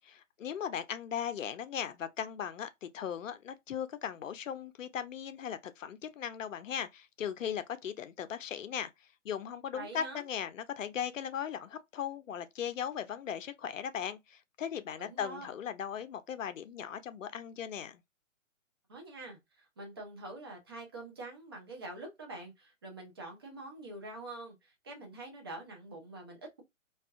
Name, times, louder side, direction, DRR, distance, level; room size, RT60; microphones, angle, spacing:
voice 1, 0.4-8.9 9.2-18.0, left 8 dB, 70° left, 0.5 m, -38 dB
voice 2, 9.7-10.2 15.0-15.5 18.9-26.6, right 2 dB, 20° right, 0.4 m, -45 dB
2.4 x 2.3 x 2.4 m
hypercardioid pair, 140°, 39 cm